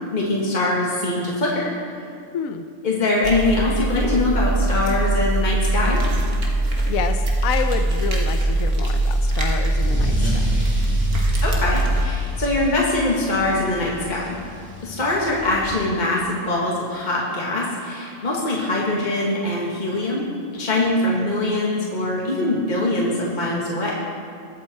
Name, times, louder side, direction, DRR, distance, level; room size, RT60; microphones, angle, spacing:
voice 1, 0.1-1.7 2.8-6.0 11.4-14.4 14.8-20.3 20.5-23.9, left 2 dB, 30° left, -4 dB, 1.9 m, -23 dB
voice 2, 2.3-2.7 6.9-10.6, left 7 dB, 75° left, 7 dB, 1.1 m, -29 dB
sound 1, 3.2-12.0, right 1 dB, 85° right, 2.0 m, -21 dB
Car / Engine starting / Accelerating revving vroom, 8.9-16.0, equal, 10° right, 2.5 m, -31 dB
21.5 x 8.0 x 4.3 m, 2.3 s
omnidirectional pair, 1.5 m